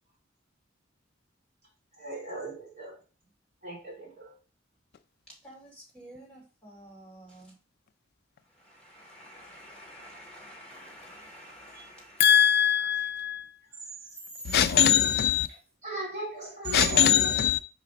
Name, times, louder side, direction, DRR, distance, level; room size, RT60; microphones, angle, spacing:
voice 1, 2.0-3.0 3.6-4.3 12.8-12.9 15.8-17.5, right 2 dB, 35° right, 3.6 m, -37 dB
voice 2, 5.4-7.5 8.6-12.2, equal, 5° left, 2.7 m, -49 dB
voice 3, 12.2-13.5 14.5-15.5 16.7-17.6, left 9 dB, 50° left, 0.3 m, -22 dB
5.1 x 5.1 x 3.9 m
head